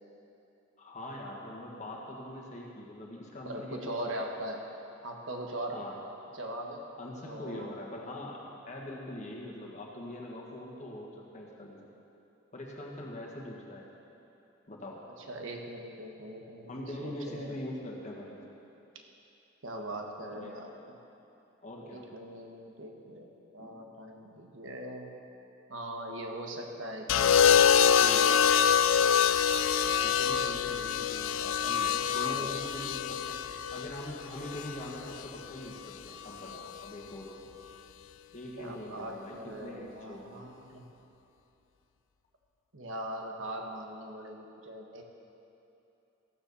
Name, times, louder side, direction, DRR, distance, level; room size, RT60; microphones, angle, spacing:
voice 1, 0.8-4.4 5.7-6.0 7.0-11.9 12.5-13.9 14.7-15.0 16.7-18.4 20.3-20.5 21.6-22.0 23.6-23.9 29.8-33.4 33.7-37.5 38.3-40.5, left 1 dB, 35° left, -2 dB, 1.6 m, -43 dB
voice 2, 3.4-4.6 5.0-5.8 6.3-6.8 7.2-7.7 15.2-17.6 19.6-21.0 21.8-25.1 25.7-28.4 32.1-32.6 38.6-40.8 42.7-45.0, right 1 dB, 75° right, 2 dB, 1.3 m, -41 dB
sound 1, 27.1-35.2 36.5-36.9, left 8 dB, 80° left, 0.4 m, -25 dB
15.0 x 7.2 x 6.9 m, 2.9 s
head